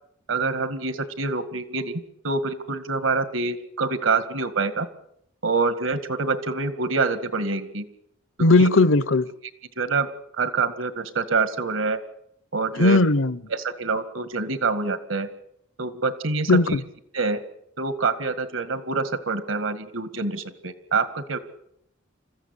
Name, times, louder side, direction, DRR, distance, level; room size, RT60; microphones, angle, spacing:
voice 1, 0.3-4.9 5.4-7.9 8.6-8.7 9.8-10.1 10.4-12.0 12.5-13.0 13.5-15.3 15.8-16.8 17.1-17.4 17.8-21.4, right 4 dB, 75° right, 2.0 m, -26 dB
voice 2, 8.4-9.2 12.8-13.3 16.5-16.7, left 2 dB, 75° left, 0.9 m, -17 dB
28.5 x 15.0 x 9.9 m
head